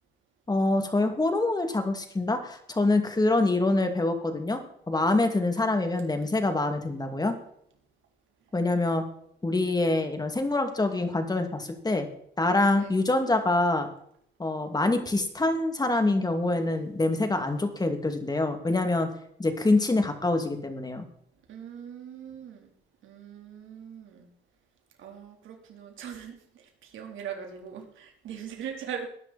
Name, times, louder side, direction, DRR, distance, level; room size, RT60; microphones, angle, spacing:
voice 1, 0.5-4.6 4.9-7.4 8.5-9.0 9.4-12.1 12.4-13.9 14.4-19.1 19.4-21.0, left 2 dB, 20° left, 6 dB, 2.7 m, -25 dB
voice 2, 21.5-22.7 23.0-24.3 25.0-29.1, right 8 dB, 80° right, 2 dB, 3.8 m, -41 dB
19.0 x 10.5 x 4.4 m, 0.68 s
cardioid pair, 90°, 20 cm